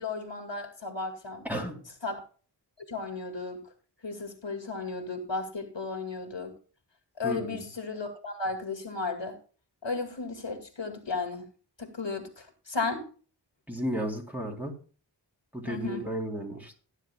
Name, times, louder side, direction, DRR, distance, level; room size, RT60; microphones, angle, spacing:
voice 1, 0.0-1.5 2.0-2.2 2.9-3.6 4.0-6.5 7.2-9.4 9.8-11.5 11.8-13.0 15.7-16.0, left 3 dB, 70° left, 4 dB, 2.6 m, -34 dB
voice 2, 1.4-1.8 7.2-7.6 13.7-14.7 15.5-16.7, right 1 dB, 5° right, 0 dB, 3.6 m, -33 dB
17.0 x 10.0 x 2.4 m, 0.38 s
wide cardioid pair, 55°, 46 cm